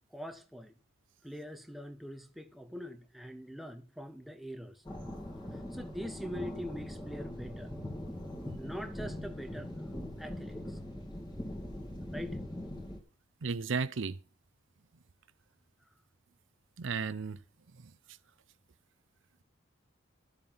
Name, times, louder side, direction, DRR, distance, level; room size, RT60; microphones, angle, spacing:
voice 1, 0.1-0.7 1.2-4.8 5.7-7.8 8.5-9.7 10.2-10.8 12.1-12.4, equal, ahead, 0.9 m, -43 dB
sound 1, 4.9-13.0, left 1 dB, 20° left, 2.6 m, -41 dB
voice 2, 13.4-14.2 16.8-17.4, right 5 dB, 65° right, 0.6 m, -33 dB
12.5 x 7.6 x 5.6 m
head